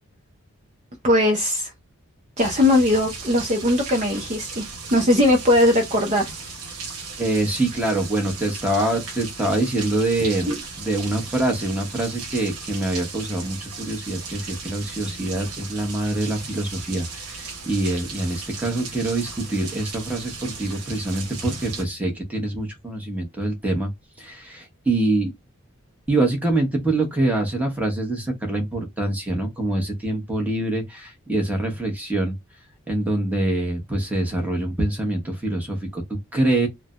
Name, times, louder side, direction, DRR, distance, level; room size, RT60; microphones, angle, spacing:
voice 1, 1.0-1.7 2.4-4.6 4.9-6.3 10.5-10.6, left 1 dB, 30° right, 0.5 m, -19 dB
sound 1, 2.4-21.8, right 4 dB, 80° right, 0.8 m, -36 dB
voice 2, 7.2-23.9 24.2-25.3 26.1-32.3 32.9-36.0 36.3-36.7, right 2 dB, 5° right, 0.9 m, -25 dB
3.2 x 2.0 x 2.4 m
head